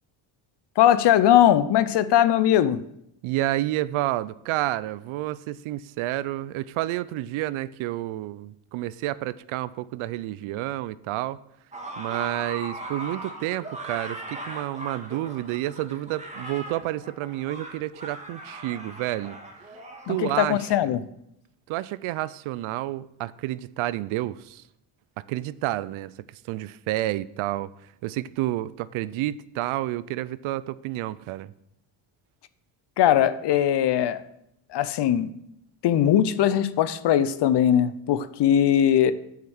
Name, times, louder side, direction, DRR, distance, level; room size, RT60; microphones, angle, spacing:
voice 1, 0.8-2.8 20.1-21.0 33.0-34.2 34.7-35.3 35.8-39.1, left 10 dB, 55° left, 0.7 m, -20 dB
voice 2, 3.2-11.4 12.0-19.4 20.1-21.0 21.7-24.6 25.2-27.7 28.0-31.5, right 15 dB, 75° right, 0.5 m, -30 dB
sound 1, 11.7-20.2, right 1 dB, 15° right, 1.6 m, -39 dB
7.3 x 5.9 x 6.3 m
cardioid pair, 90°, 49 cm